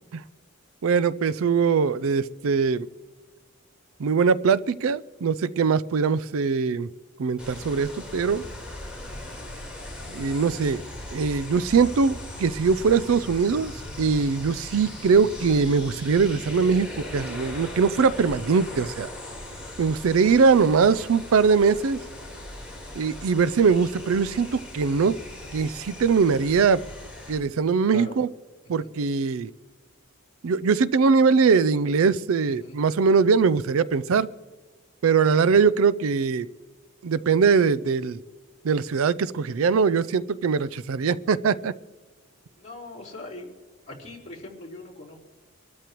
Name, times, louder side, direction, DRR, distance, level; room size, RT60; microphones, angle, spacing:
voice 1, 0.8-2.9 4.0-6.9 7.2-8.4 10.1-10.8 11.1-13.7 14.0-19.1 19.8-22.0 23.0-25.2 25.5-26.8 27.3-28.3 28.7-29.5 30.4-34.3 35.0-36.5 37.0-38.2 38.6-41.7, right 5 dB, 75° right, 18 dB, 0.4 m, -21 dB
sound 1, 7.4-27.4, left 1 dB, 5° right, 3.8 m, -39 dB
voice 2, 42.6-43.5 43.9-45.2, left 2 dB, 30° left, -4 dB, 3.8 m, -40 dB
25.5 x 13.0 x 3.0 m, 1.4 s
head